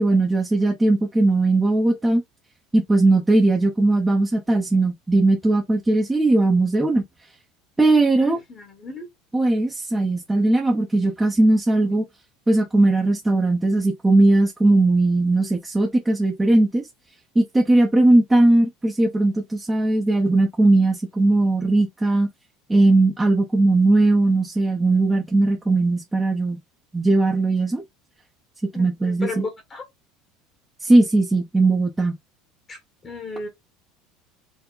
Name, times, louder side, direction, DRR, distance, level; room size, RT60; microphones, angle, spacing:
voice 1, 0.0-2.2 2.7-7.0 7.8-8.4 9.3-12.0 12.5-16.9 17.4-22.3 22.7-26.6 26.9-27.8 28.7-29.4 30.8-32.2, right 2 dB, 10° right, 0.6 m, -19 dB
voice 2, 8.2-9.1 28.7-29.8 32.7-33.5, left 3 dB, 25° left, 1.0 m, -34 dB
4.5 x 2.0 x 3.8 m
cardioid pair, 150°, 0 cm